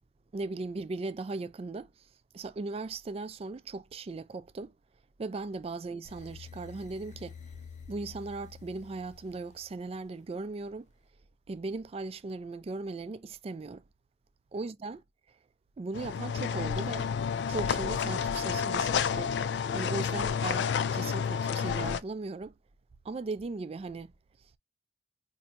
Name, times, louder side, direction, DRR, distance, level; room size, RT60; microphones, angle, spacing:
voice 1, 0.3-1.9 2.3-4.7 5.2-7.3 7.9-10.9 11.5-13.8 14.5-15.0 15.8-17.1 17.5-19.3 19.7-20.7 20.9-22.5 23.0-24.1, right 3 dB, 35° right, 0.3 m, -38 dB
sound 1, 6.0-10.1, left 6 dB, 45° left, 0.7 m, -49 dB
sound 2, 15.9-22.0, left 7 dB, 80° left, 0.3 m, -30 dB
4.4 x 2.7 x 2.5 m
head